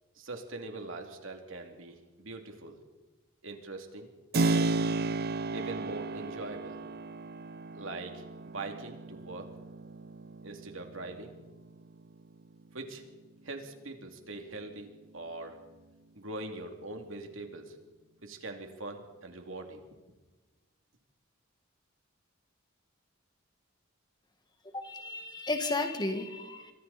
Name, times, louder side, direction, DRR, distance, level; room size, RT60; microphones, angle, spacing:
voice 1, 0.2-2.8 3.4-4.1 4.4-4.8 5.5-6.8 7.7-9.5 10.4-11.3 12.7-13.0 13.4-14.9 15.1-15.6 16.1-17.8 18.2-19.8, right 2 dB, 70° right, 3 dB, 2.9 m, -42 dB
Keyboard (musical), 4.3-12.9, right 3 dB, 50° right, 0.6 m, -34 dB
voice 2, 24.7-26.7, left 2 dB, 20° left, 6 dB, 1.7 m, -33 dB
27.0 x 23.5 x 4.3 m, 1.2 s
head